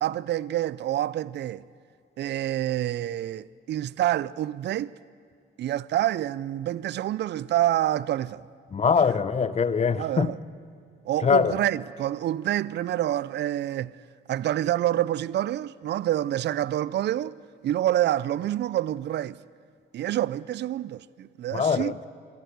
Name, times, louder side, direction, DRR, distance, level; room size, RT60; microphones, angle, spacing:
voice 1, 0.0-1.6 2.2-4.9 5.6-8.5 10.0-10.4 11.0-14.0 14.3-17.3 17.6-19.4 19.9-22.1, right 13 dB, 60° right, 0.5 m, -27 dB
voice 2, 8.7-10.3 11.2-11.6 21.5-21.9, left 6 dB, 35° left, 0.8 m, -22 dB
25.0 x 14.5 x 8.1 m
cardioid pair, 90°, 20 cm